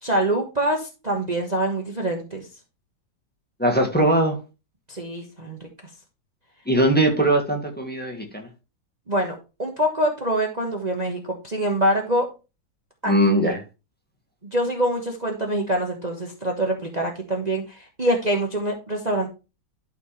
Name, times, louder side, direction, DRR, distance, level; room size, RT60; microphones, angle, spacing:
voice 1, 0.0-2.5 4.9-5.7 9.1-12.3 13.0-13.1 13.4-13.5 14.5-19.3, right 1 dB, 25° right, 1.4 m, -25 dB
voice 2, 3.6-4.4 6.7-8.5 13.1-13.6, right 1 dB, 5° left, 1.7 m, -20 dB
12.0 x 5.0 x 3.2 m
omnidirectional pair, 1.8 m